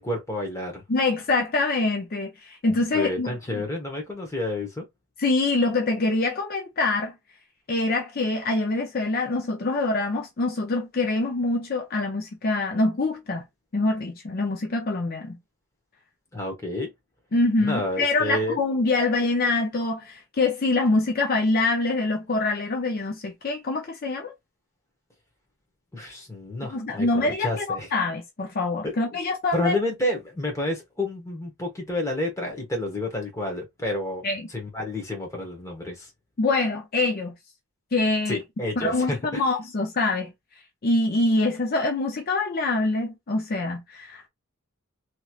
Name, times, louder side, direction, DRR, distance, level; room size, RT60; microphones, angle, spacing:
voice 1, 0.0-0.8 2.9-4.8 16.3-16.9 17.6-18.6 25.9-27.9 28.8-29.2 29.5-34.2 34.5-36.1 38.3-39.5, left 1 dB, 15° left, 1.0 m, -30 dB
voice 2, 0.9-3.7 5.2-7.1 7.7-13.4 13.7-15.4 17.3-24.3 26.7-29.8 34.2-34.5 36.4-37.3 37.9-38.4 38.8-40.3 40.8-44.3, left 2 dB, 45° left, 0.6 m, -25 dB
3.0 x 2.9 x 2.4 m
head